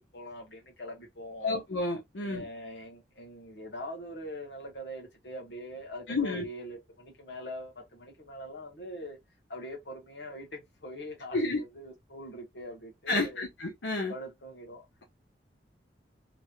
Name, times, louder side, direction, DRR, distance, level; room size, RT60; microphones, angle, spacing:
voice 1, 0.0-1.6 2.2-9.2 9.5-13.4 14.1-14.9, equal, 70° left, 1.2 m, -43 dB
voice 2, 1.4-2.4 6.1-6.4 11.3-11.6 13.1-14.1, left 2 dB, 90° left, 0.8 m, -30 dB
3.0 x 3.0 x 2.4 m
head